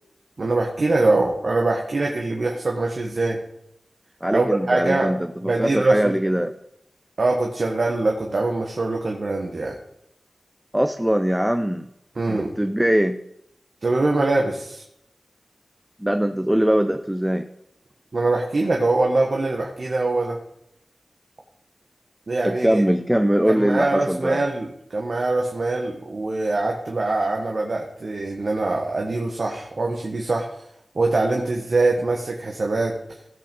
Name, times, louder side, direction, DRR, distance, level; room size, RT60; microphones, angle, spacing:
voice 1, 0.4-3.4 4.3-5.1 5.4-6.1 7.2-9.8 12.1-12.5 13.8-14.8 18.1-20.4 22.3-22.8 23.5-30.6 30.9-33.0, right 2 dB, 65° right, 0 dB, 1.3 m, -23 dB
voice 2, 4.2-6.5 10.7-11.9 12.3-13.2 16.0-17.4 22.4-24.4, equal, 10° right, 8 dB, 0.6 m, -21 dB
15.5 x 5.2 x 5.4 m, 0.79 s
cardioid pair, 50°, 0 cm